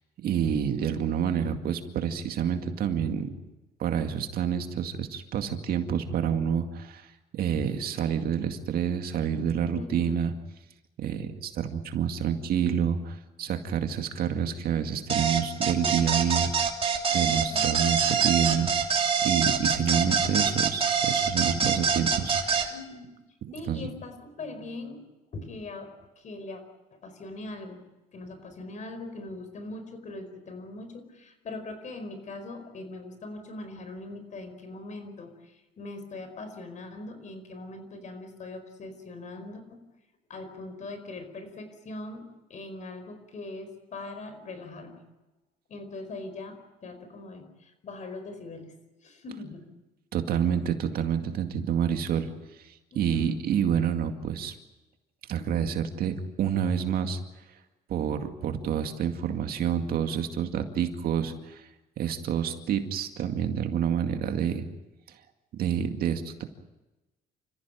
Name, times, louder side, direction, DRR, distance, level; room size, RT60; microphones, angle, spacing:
voice 1, 0.2-3.3 3.8-10.3 11.0-16.7 17.1-22.7 23.7-23.8 50.1-52.3 52.6-54.5 55.3-57.2 57.9-61.6 62.0-64.7 65.5-66.4, right 8 dB, 65° right, 6 dB, 2.2 m, -28 dB
voice 2, 9.7-10.3 17.2-17.7 22.7-23.2 23.5-25.0 25.3-26.6 26.9-27.8 28.1-39.9 40.3-45.0 45.7-48.7 49.0-49.7 52.9-53.3, left 2 dB, 45° left, 9 dB, 4.9 m, -41 dB
sound 1, 15.1-22.7, right 6 dB, 35° right, 2.9 m, -25 dB
28.5 x 15.0 x 9.1 m, 1.1 s
cardioid pair, 110°, 17 cm